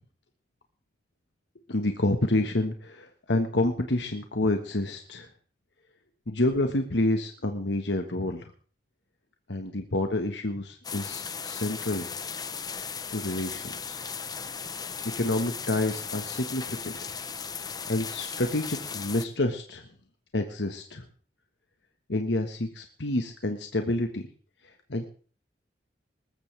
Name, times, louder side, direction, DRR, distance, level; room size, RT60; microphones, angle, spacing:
voice 1, 1.7-5.3 6.3-8.5 9.5-12.1 13.1-14.0 14.7-14.9 15.2-17.1 17.9-19.8 20.3-21.0 22.1-24.2 24.9-25.1, left 2 dB, 80° left, 5 dB, 1.5 m, -28 dB
sound 1, 10.8-19.3, left 6 dB, 20° left, 0.8 m, -36 dB
20.0 x 14.0 x 3.4 m, 0.41 s
head